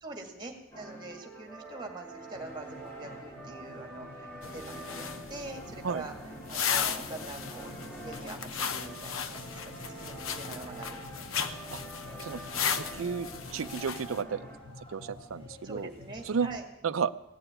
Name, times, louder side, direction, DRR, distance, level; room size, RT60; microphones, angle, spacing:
voice 1, 0.0-6.1 6.5-11.3 15.6-16.6, right 2 dB, 20° right, 4 dB, 2.1 m, -44 dB
sound 1, 0.7-14.6, right 2 dB, 15° left, 4.5 m, -46 dB
sound 2, 2.3-16.6, left 2 dB, 30° left, 3.3 m, -49 dB
sound 3, 4.4-14.2, left 7 dB, 90° left, 0.9 m, -36 dB
voice 2, 12.7-14.4 14.9-15.9 16.3-16.5 16.8-17.1, right 6 dB, 75° right, 13 dB, 0.5 m, -32 dB
17.0 x 7.0 x 9.9 m, 0.93 s
head